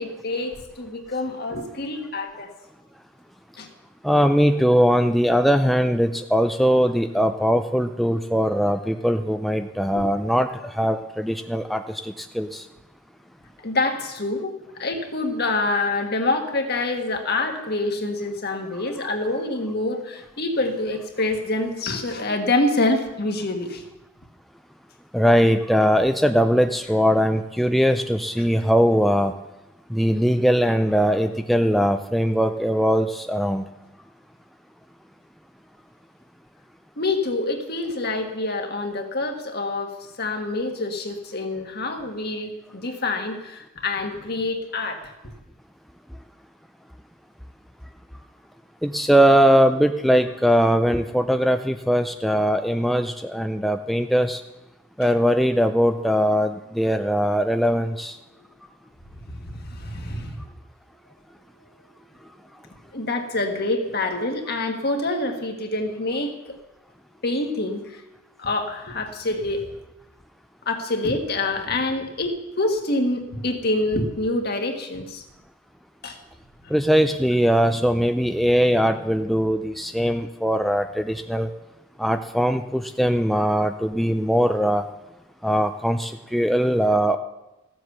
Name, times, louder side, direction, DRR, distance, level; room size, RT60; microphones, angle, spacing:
voice 1, 0.0-2.5 3.6-3.7 9.9-10.0 13.6-14.5 14.8-23.8 28.4-28.5 37.0-45.1 59.3-60.5 62.9-66.6 67.2-68.0 68.4-69.7 70.6-75.2 76.0-76.2 76.6-76.7, left 2 dB, 55° left, 4 dB, 1.6 m, -26 dB
voice 2, 4.0-12.6 25.1-29.3 29.9-33.6 48.8-54.4 55.0-58.2 76.7-81.5 82.0-84.8 85.4-87.2, equal, ahead, 7 dB, 0.4 m, -20 dB
15.0 x 7.8 x 6.7 m, 0.97 s
head